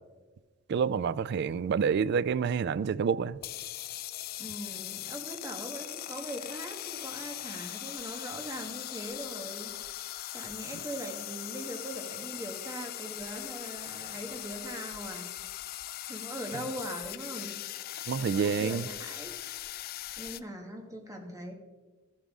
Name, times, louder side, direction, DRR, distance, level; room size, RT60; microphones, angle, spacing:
voice 1, 0.7-3.4 18.1-18.8, right 6 dB, 50° right, 0.3 m, -28 dB
sound 1, 3.3-20.4, left 14 dB, 45° left, 0.3 m, -40 dB
voice 2, 4.4-15.3 16.0-17.6 18.2-19.3 20.2-21.5, right 1 dB, 15° right, 1.3 m, -41 dB
13.5 x 7.4 x 3.6 m
head